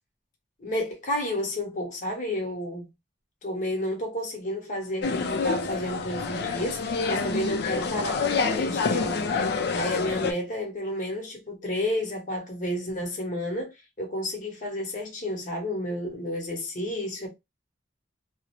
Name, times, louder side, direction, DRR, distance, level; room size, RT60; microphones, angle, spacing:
voice 1, 0.6-2.9 3.4-9.4 9.8-17.3, left 1 dB, 45° left, 0.9 m, -31 dB
sound 1, 5.0-10.3, left 4 dB, 65° left, 0.4 m, -27 dB
2.5 x 2.0 x 2.9 m
head